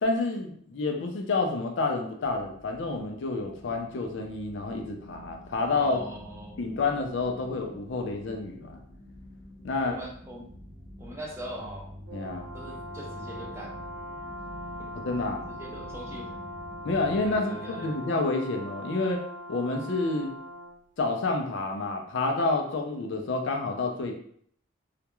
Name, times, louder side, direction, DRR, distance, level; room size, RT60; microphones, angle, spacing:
voice 1, 0.0-6.0 6.6-8.8 9.6-10.0 12.1-12.5 14.9-15.4 16.8-19.2 19.5-20.4 21.0-24.2, left 3 dB, 65° left, 3 dB, 0.4 m, -29 dB
sound 1, 2.2-17.4, equal, 30° left, 0.8 m, -47 dB
voice 2, 5.8-6.5 9.8-10.5 11.0-11.9 12.5-13.9 15.3-16.3 17.2-17.9, right 1 dB, 15° right, -2 dB, 0.4 m, -41 dB
Brass instrument, 12.1-20.8, equal, 75° right, 0.6 m, -41 dB
2.3 x 2.1 x 2.9 m, 0.63 s
head